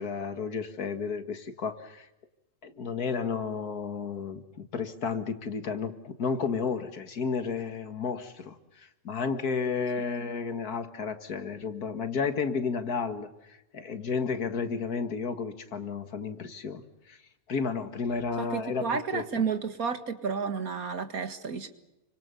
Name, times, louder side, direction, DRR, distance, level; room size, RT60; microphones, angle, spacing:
voice 1, 0.0-2.1 2.6-17.2 17.5-18.9 19.1-19.4, left 5 dB, 85° left, 9 dB, 2.3 m, -32 dB
voice 2, 18.4-21.7, right 5 dB, 70° right, 9 dB, 2.3 m, -31 dB
28.5 x 25.5 x 7.0 m, 0.93 s
omnidirectional pair, 1.6 m